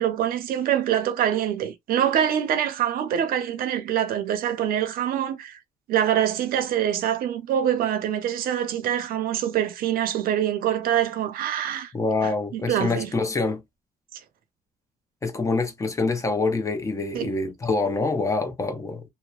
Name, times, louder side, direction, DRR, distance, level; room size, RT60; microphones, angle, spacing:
voice 1, 0.0-5.6 5.9-11.9 12.2-13.1 17.1-17.3, right 10 dB, 80° right, 0.7 m, -25 dB
voice 2, 11.9-13.6 15.2-19.0, left 3 dB, 20° left, 0.6 m, -25 dB
2.8 x 2.1 x 2.3 m
cardioid pair, 130°, 15 cm